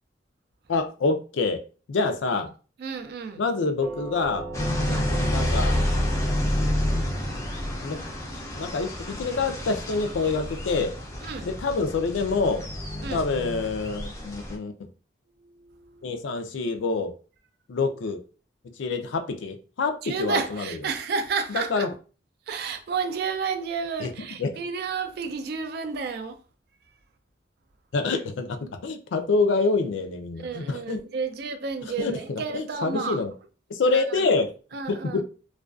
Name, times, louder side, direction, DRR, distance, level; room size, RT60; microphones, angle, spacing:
voice 1, 0.7-1.6 1.9-2.5 3.4-4.5 5.1-5.8 7.8-8.0 8.5-10.9 11.4-12.6 13.1-14.7 16.0-17.1 17.7-18.2 18.8-20.7 21.5-21.9 24.0-24.1 24.4-24.5 27.9-31.0 32.0-33.3 33.7-34.5 34.9-35.2, left 3 dB, 90° left, 0.4 m, -26 dB
voice 2, 2.8-3.4 4.9-5.2 6.9-7.4 11.2-11.5 13.0-13.3 15.4-16.2 20.0-21.9 22.5-26.4 30.4-33.2 33.9-34.3 34.7-35.2, right 5 dB, 55° right, 0.3 m, -32 dB
Doorbell, 3.8-12.7, right 2 dB, 85° right, 0.7 m, -40 dB
sound 1, 4.5-14.6, left 1 dB, 15° left, 0.4 m, -29 dB
2.4 x 2.2 x 2.3 m
head